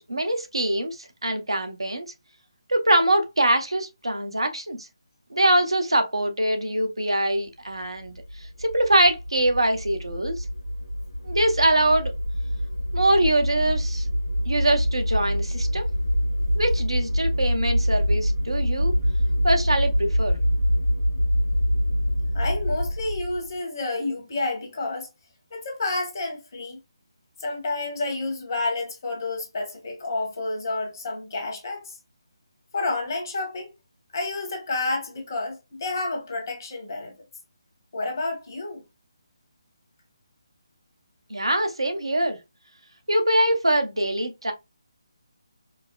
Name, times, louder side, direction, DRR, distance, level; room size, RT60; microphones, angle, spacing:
voice 1, 0.0-2.1 2.7-4.8 5.3-8.1 8.6-10.4 11.2-12.1 12.9-14.0 14.4-15.9 16.5-18.9 19.4-20.4 41.3-42.4 43.1-44.5, right 1 dB, 75° right, 0.8 m, -23 dB
sound 1, 8.1-23.5, equal, 65° left, 0.8 m, -25 dB
voice 2, 22.3-25.1 25.5-26.8 27.4-32.0 32.7-33.7 34.1-37.1 37.9-38.8, left 2 dB, 40° left, 1.3 m, -30 dB
4.7 x 2.0 x 2.2 m
figure-of-eight pair, 150°, 3 cm